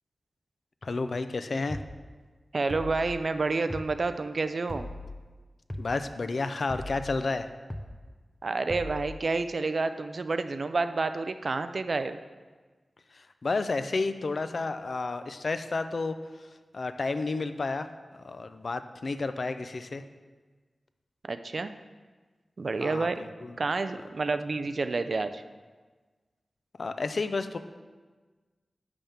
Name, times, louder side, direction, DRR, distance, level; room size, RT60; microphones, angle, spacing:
voice 1, 0.8-1.8 5.8-7.5 13.1-16.5 16.7-20.0 22.8-23.6 26.8-27.6, left 3 dB, 60° left, 10 dB, 0.5 m, -31 dB
sound 1, 1.7-1.9 2.7-3.1 3.7-3.9 4.7-5.1 5.7-5.9 6.7-7.1 7.7-7.9 8.7-9.1, left 1 dB, 15° left, 0.8 m, -38 dB
voice 2, 2.5-4.9 8.4-12.2 21.2-21.7 22.6-23.2 23.6-25.4, right 3 dB, 55° right, 10 dB, 0.5 m, -29 dB
11.0 x 3.7 x 7.1 m, 1.4 s
wide cardioid pair, 90°, 0 cm